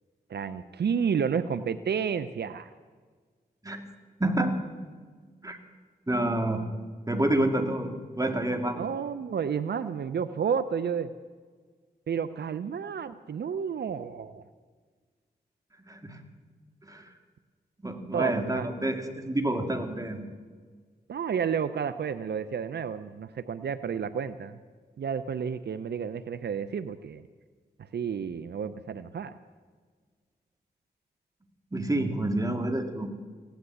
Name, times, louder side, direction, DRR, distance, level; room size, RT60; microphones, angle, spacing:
voice 1, 0.3-2.7 8.8-11.1 12.1-14.4 18.1-18.7 21.1-24.6 25.0-27.2 27.9-29.4, right 7 dB, 80° right, 12 dB, 0.6 m, -31 dB
voice 2, 4.2-4.6 5.4-5.6 6.1-6.6 7.1-7.9 8.2-8.8 15.9-16.2 16.8-17.0 17.8-20.3 31.7-33.1, right 1 dB, 20° right, 4 dB, 2.1 m, -28 dB
16.5 x 10.5 x 8.2 m, 1.5 s
cardioid pair, 60°, 17 cm